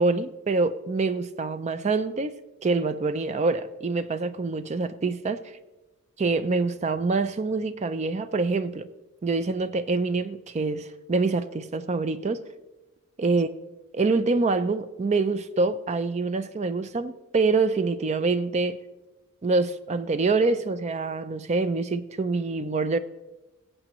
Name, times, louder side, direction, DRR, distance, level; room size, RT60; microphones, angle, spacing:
voice 1, 0.0-2.3 2.6-5.4 6.2-8.9 9.2-12.4 13.2-13.5 13.9-18.8 19.4-23.0, right 3 dB, 30° right, 0.4 m, -25 dB
21.5 x 7.8 x 3.0 m
head